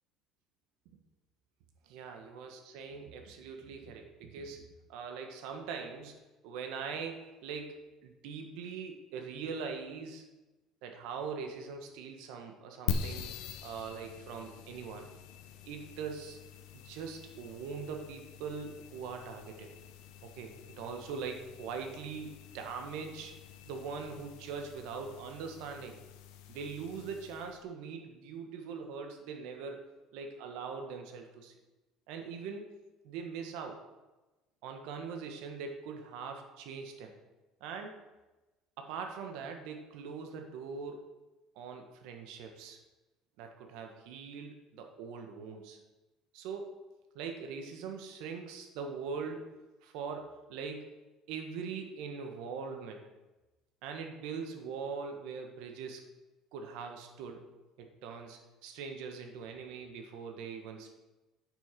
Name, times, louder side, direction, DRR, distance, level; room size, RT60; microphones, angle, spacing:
voice 1, 1.8-10.2 10.8-15.1 15.7-16.4 16.7-19.7 20.2-23.3 23.6-25.9 26.5-29.8 30.1-31.5 32.1-32.8 33.0-33.8 34.6-37.1 37.6-37.9 38.8-41.1 41.5-42.8 43.4-45.8 46.3-46.8 47.1-49.5 49.8-50.9 51.3-53.0 53.8-56.0 56.5-57.4 57.8-61.0, right 5 dB, 75° right, 4 dB, 1.4 m, -42 dB
sound 1, 12.9-27.6, left 6 dB, 80° left, 0.8 m, -44 dB
9.0 x 6.4 x 5.9 m, 1.1 s
cardioid pair, 170°, 0 cm